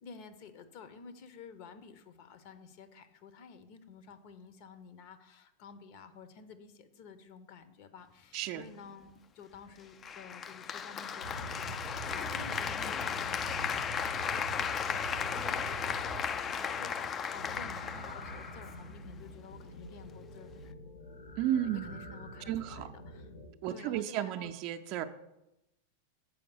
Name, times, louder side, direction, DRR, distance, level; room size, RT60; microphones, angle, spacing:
voice 1, 0.0-20.7 21.6-23.3 23.7-24.5, left 5 dB, 45° left, 10 dB, 0.8 m, -51 dB
voice 2, 8.3-8.7 21.4-21.9 22.5-22.9 23.6-25.0, right 11 dB, 45° right, 9 dB, 0.5 m, -33 dB
Applause, 10.0-19.0, left 7 dB, 25° left, 0.3 m, -35 dB
sound 1, 11.2-23.5, right 2 dB, 75° left, 2.5 m, -45 dB
7.0 x 5.2 x 6.8 m, 0.90 s
figure-of-eight pair, 90°, 0 cm